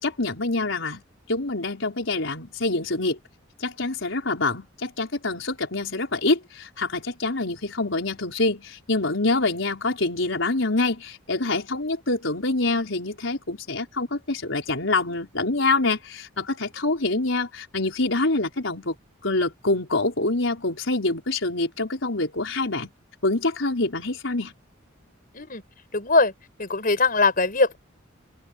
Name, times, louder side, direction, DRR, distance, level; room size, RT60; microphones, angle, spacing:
voice 1, 0.0-1.0 1.3-3.2 3.6-19.0 19.2-22.9 23.2-24.5, left 2 dB, 75° left, 4.6 m, -26 dB
voice 2, 25.9-26.3 26.6-27.8, left 3 dB, 45° left, 5.6 m, -21 dB
open air
head